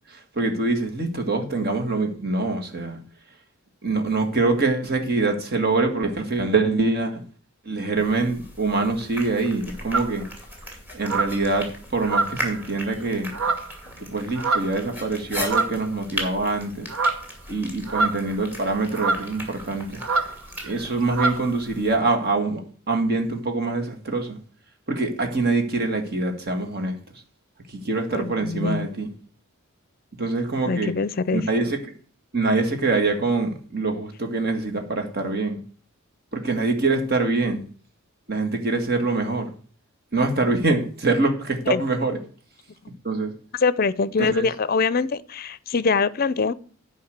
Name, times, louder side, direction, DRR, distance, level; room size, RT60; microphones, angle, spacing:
voice 1, 0.1-3.0 3.8-7.2 7.7-10.3 10.9-13.3 14.0-16.9 17.5-20.0 20.6-22.6 22.9-24.4 24.9-27.0 27.7-29.1 30.2-30.9 31.3-31.8 32.3-35.6 36.3-37.6 38.3-39.5 40.1-42.2 43.0-43.3 44.2-44.5, right 3 dB, 50° right, 2.0 m, -24 dB
sound 1, 8.0-22.0, equal, 10° right, 2.5 m, -38 dB
sound 2, 9.9-10.2 11.0-11.4 12.0-12.6 13.3-13.8 14.3-14.8 15.4-15.9 16.9-17.3 17.9-18.4 18.9-19.3 20.0-20.3 20.6-20.8 21.1-21.4, right 3 dB, 85° right, 1.1 m, -25 dB
voice 2, 28.1-28.9 30.6-31.5 41.7-41.8 43.6-46.5, left 4 dB, 45° left, 0.5 m, -23 dB
9.7 x 5.4 x 8.0 m
head